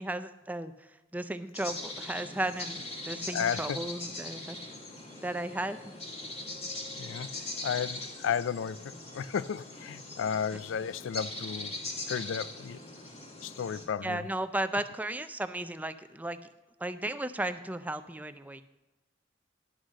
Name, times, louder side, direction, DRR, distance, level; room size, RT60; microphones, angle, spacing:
voice 1, 0.0-4.6 5.2-5.8 14.0-16.4 16.8-18.6, right 1 dB, 10° right, 0.4 m, -35 dB
sound 1, 1.5-13.8, left 2 dB, 35° left, 2.1 m, -41 dB
voice 2, 3.3-3.8 7.0-11.7 12.1-12.8 13.4-14.3, left 7 dB, 85° left, 0.4 m, -33 dB
11.5 x 6.4 x 6.3 m
head